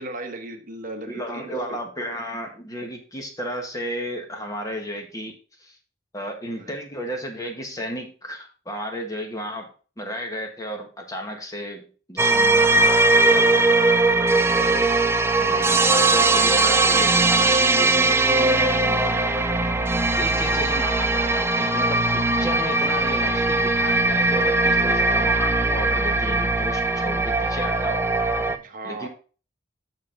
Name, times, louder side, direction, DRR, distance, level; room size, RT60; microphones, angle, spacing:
voice 1, 0.0-1.5 6.5-6.8 14.2-14.6 28.5-29.1, right 2 dB, 45° right, 6 dB, 1.0 m, -37 dB
voice 2, 1.1-5.8 6.1-13.7 14.5-14.9 15.4-19.2 20.1-28.0 28.8-29.1, equal, 20° left, 3 dB, 1.3 m, -33 dB
sound 1, 12.2-28.6, right 2 dB, 15° right, 0.4 m, -20 dB
6.6 x 6.2 x 3.8 m, 0.37 s
head